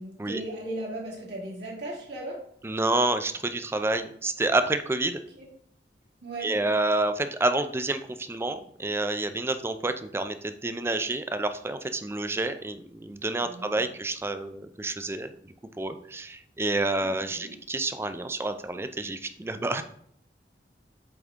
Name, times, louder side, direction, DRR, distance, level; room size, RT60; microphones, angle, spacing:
voice 1, 0.0-2.4 5.4-5.5 6.2-6.5 13.4-13.9 17.0-17.6, right 1 dB, 75° right, -3 dB, 2.2 m, -37 dB
voice 2, 2.6-5.2 6.4-19.8, right 2 dB, 15° right, 10 dB, 0.4 m, -29 dB
8.0 x 3.7 x 3.6 m, 0.66 s
head